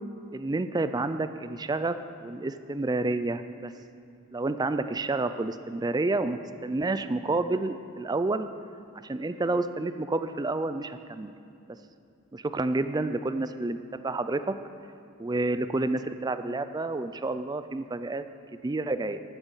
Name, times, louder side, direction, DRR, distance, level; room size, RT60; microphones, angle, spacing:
voice 1, 0.3-3.7 4.3-8.5 9.0-11.3 12.3-14.5 15.2-18.2 18.5-19.2, right 2 dB, 20° right, 11 dB, 0.3 m, -29 dB
13.5 x 8.9 x 5.6 m, 2.4 s
head